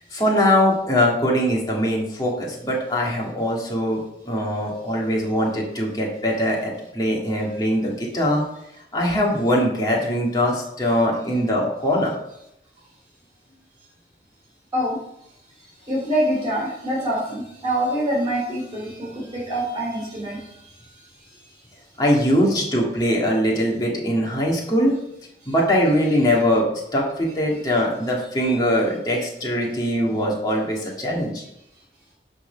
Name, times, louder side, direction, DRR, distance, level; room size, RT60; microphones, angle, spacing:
voice 1, 0.1-4.0 4.3-8.4 8.9-12.2 22.0-25.0 25.5-26.7 26.9-31.4, equal, 20° left, -3 dB, 2.1 m, -21 dB
voice 2, 15.9-21.5 25.4-25.5 27.5-27.6 28.4-28.5, right 1 dB, 25° right, -6 dB, 2.8 m, -26 dB
10.5 x 4.2 x 5.7 m, 0.79 s
head